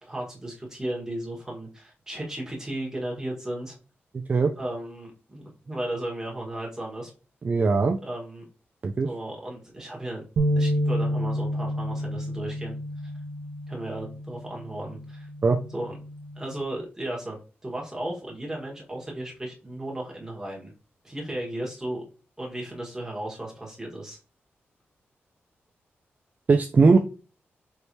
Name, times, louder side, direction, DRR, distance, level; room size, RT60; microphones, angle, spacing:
voice 1, 0.0-3.8 4.6-7.1 8.0-8.4 9.0-10.2 10.6-12.7 13.7-15.3 15.7-16.0 16.3-20.7 21.0-22.0 22.4-24.2, right 1 dB, 15° right, -2 dB, 1.5 m, -35 dB
voice 2, 4.1-4.5 7.4-8.0 8.8-9.1 15.4-15.6 26.5-27.0, right 4 dB, 40° right, 5 dB, 0.3 m, -20 dB
sound 1, 10.4-16.6, equal, 85° right, 0.6 m, -30 dB
4.6 x 3.3 x 2.7 m, 0.35 s
cardioid pair, 95°, 4 cm